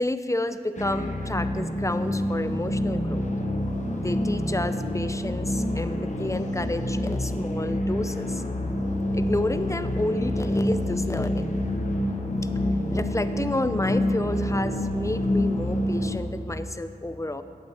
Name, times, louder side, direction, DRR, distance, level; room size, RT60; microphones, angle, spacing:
voice 1, 0.0-3.2 4.0-8.4 9.1-11.5 12.9-17.4, left 1 dB, 20° left, 11 dB, 0.5 m, -30 dB
sound 1, 0.8-16.2, left 1 dB, 50° left, 1.1 m, -27 dB
8.7 x 8.0 x 7.6 m, 2.4 s
wide cardioid pair, 55°, 16 cm